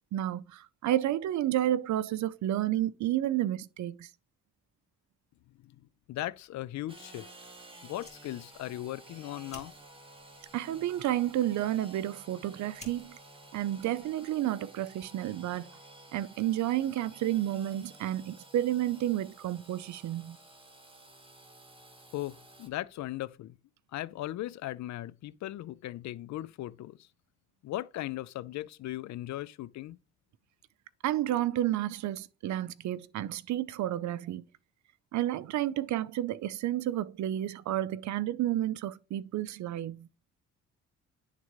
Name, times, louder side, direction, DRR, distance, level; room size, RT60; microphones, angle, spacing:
voice 1, 0.1-4.1 10.5-13.2 13.5-15.7 16.1-20.4 31.0-34.4 35.1-40.1, right 13 dB, 70° right, 0.6 m, -31 dB
voice 2, 5.6-7.3 7.8-9.7 22.1-23.5 23.9-27.1 27.6-30.0, left 15 dB, 65° left, 0.5 m, -38 dB
Engine / Sawing, 6.9-22.7, right 1 dB, 15° right, 1.5 m, -53 dB
Fire, 7.9-14.7, left 2 dB, 20° left, 2.7 m, -57 dB
10.5 x 3.7 x 3.0 m
cardioid pair, 90°, 30 cm